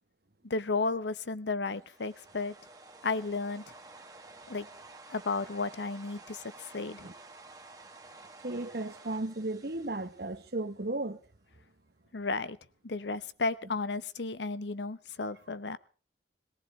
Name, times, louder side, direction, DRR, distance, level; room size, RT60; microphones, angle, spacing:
voice 1, 0.4-2.5 3.0-3.7 4.5-4.7 5.1-7.1 12.1-12.6 12.8-15.8, left 3 dB, 85° left, 0.9 m, -33 dB
sound 1, 1.7-10.9, right 3 dB, 20° right, 1.5 m, -52 dB
voice 2, 8.4-11.2, right 2 dB, 60° right, 1.2 m, -35 dB
19.5 x 18.5 x 3.2 m
head